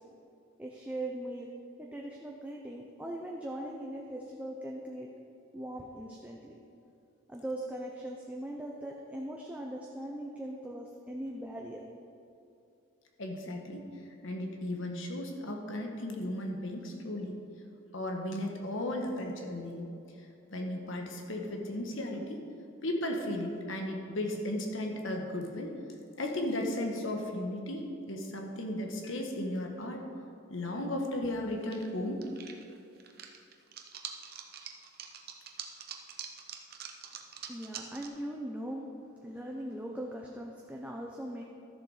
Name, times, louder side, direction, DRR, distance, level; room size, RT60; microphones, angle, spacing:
voice 1, 0.6-1.5 1.8-5.1 5.5-6.6 7.3-11.8 37.5-38.9 39.2-41.4, right 1 dB, 5° right, -1 dB, 0.6 m, -40 dB
voice 2, 13.2-13.9 14.2-17.4 17.9-19.9 20.5-22.4 22.8-25.8 26.2-30.0 30.5-32.3, left 1 dB, 70° left, 2 dB, 1.3 m, -35 dB
sound 1, 31.5-31.9 32.2-38.1, right 8 dB, 45° right, 0.8 m, -44 dB
12.5 x 7.0 x 4.9 m, 2.7 s
head